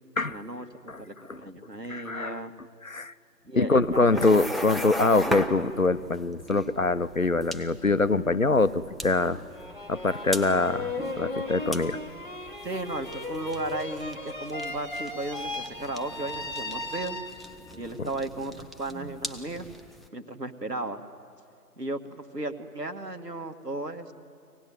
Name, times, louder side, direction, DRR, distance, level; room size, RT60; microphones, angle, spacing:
voice 1, 0.3-2.5 3.5-4.2 5.3-5.4 12.6-17.2 17.8-19.7 20.1-21.0 21.8-24.1, right 2 dB, 75° right, 7 dB, 1.9 m, -35 dB
voice 2, 1.9-2.4 2.8-3.1 3.5-9.4 9.9-12.0 18.0-18.1, left 3 dB, 55° left, 14 dB, 0.7 m, -24 dB
sound 1, 3.8-20.1, equal, ahead, 0.6 m, -39 dB
sound 2, 9.5-17.7, left 2 dB, 30° right, 1.3 m, -36 dB
24.0 x 17.5 x 9.3 m, 2.3 s
figure-of-eight pair, 170°, 48 cm